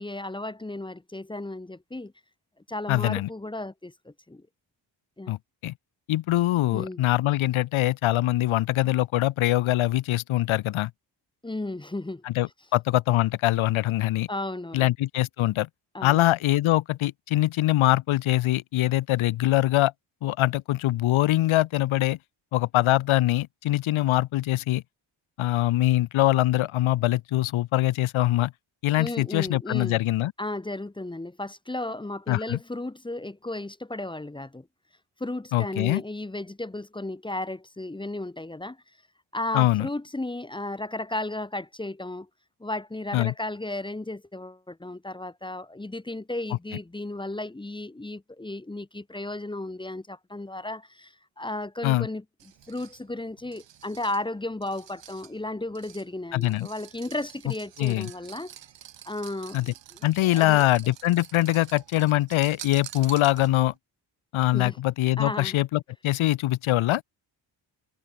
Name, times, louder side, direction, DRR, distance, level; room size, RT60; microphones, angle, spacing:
voice 1, 0.0-2.1 2.7-4.4 5.2-5.3 6.5-7.0 11.4-12.2 14.3-14.9 15.9-16.3 29.0-30.0 30.4-34.7 35.2-38.8 39.3-42.3 42.6-52.2 52.7-58.5 59.0-59.7 60.3-60.6 64.5-64.8 65.2-65.6, left 2 dB, 10° left, 1.5 m, -34 dB
voice 2, 2.9-3.3 5.3-5.4 5.6-5.7 6.1-10.9 12.2-14.3 14.7-15.7 16.0-19.9 20.2-22.2 22.5-24.8 25.4-28.5 28.8-30.3 32.3-32.6 35.5-36.0 39.5-39.9 43.1-43.3 51.8-52.1 56.3-56.7 57.8-58.1 59.5-59.7 60.0-63.7 64.3-67.0, left 15 dB, 85° left, 1.1 m, -23 dB
sound 1, 52.4-63.8, right 10 dB, 65° right, 5.2 m, -48 dB
cardioid pair, 150°, 47 cm